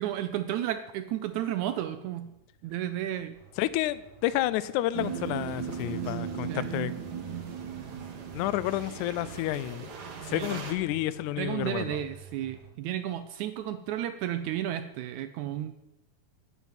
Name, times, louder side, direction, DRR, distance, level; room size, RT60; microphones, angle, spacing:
voice 1, 0.0-2.3 2.6-3.4 6.5-6.7 10.3-10.6 11.4-15.7, right 12 dB, 80° right, 10 dB, 1.7 m, -33 dB
sound 1, 3.3-12.7, right 5 dB, 40° right, 2.3 m, -53 dB
voice 2, 3.6-6.9 8.3-9.9 10.2-12.0, left 14 dB, 80° left, 16 dB, 1.8 m, -30 dB
sound 2, 4.9-10.7, right 7 dB, 60° right, 1.0 m, -37 dB
9.2 x 8.4 x 9.0 m, 0.93 s
omnidirectional pair, 3.9 m